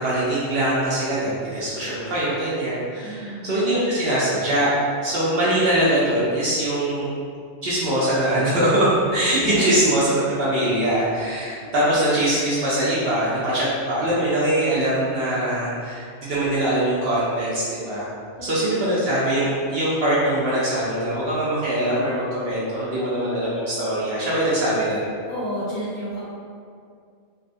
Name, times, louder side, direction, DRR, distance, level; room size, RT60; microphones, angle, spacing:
voice 1, 0.0-4.7 5.0-7.1 7.6-18.1 18.4-25.1, right 1 dB, 60° right, -8 dB, 0.7 m, -22 dB
voice 2, 3.0-3.6 9.5-9.9 10.9-11.3 11.6-11.7 18.4-19.1 25.3-26.2, equal, 50° left, -10 dB, 0.7 m, -33 dB
2.4 x 2.3 x 2.5 m, 2.2 s
omnidirectional pair, 1.3 m